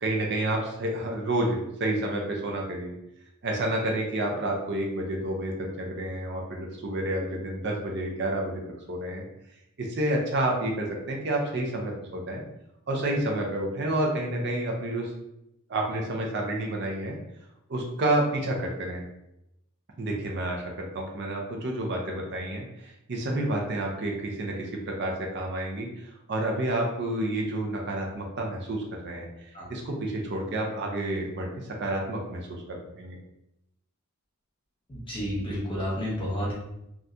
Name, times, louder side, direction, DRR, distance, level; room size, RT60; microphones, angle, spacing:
voice 1, 0.0-2.9 3.4-8.6 8.9-9.2 9.8-12.4 12.9-15.1 15.7-17.2 17.7-19.1 20.0-33.2, right 1 dB, 50° right, 0 dB, 0.5 m, -29 dB
voice 2, 34.9-36.5, equal, 25° left, -5 dB, 1.0 m, -30 dB
3.7 x 2.3 x 2.7 m, 0.85 s
head